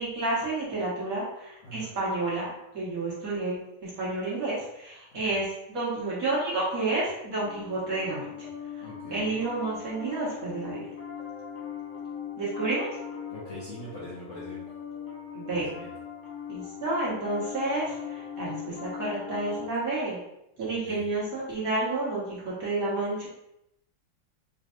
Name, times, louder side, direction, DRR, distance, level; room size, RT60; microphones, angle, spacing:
voice 1, 0.0-8.3 8.8-8.9 9.1-10.9 12.4-13.0 15.3-15.8 16.5-20.2 20.6-23.3, right 2 dB, 50° right, -8 dB, 1.5 m, -30 dB
Piano, 7.3-19.7, left 7 dB, 85° left, 0.6 m, -40 dB
voice 2, 8.8-9.4 13.3-14.6 15.5-15.9 20.8-21.0, left 1 dB, 55° left, -8 dB, 0.9 m, -42 dB
4.5 x 3.3 x 2.5 m, 0.83 s
omnidirectional pair, 2.2 m